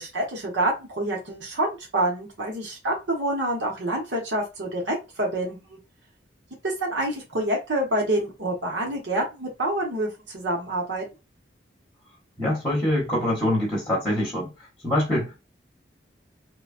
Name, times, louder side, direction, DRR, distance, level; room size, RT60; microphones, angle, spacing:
voice 1, 0.0-5.8 6.6-11.0, right 1 dB, 85° right, 1.0 m, -27 dB
voice 2, 12.4-14.5 14.8-15.4, left 1 dB, 5° left, 0.9 m, -24 dB
2.9 x 2.2 x 2.4 m
head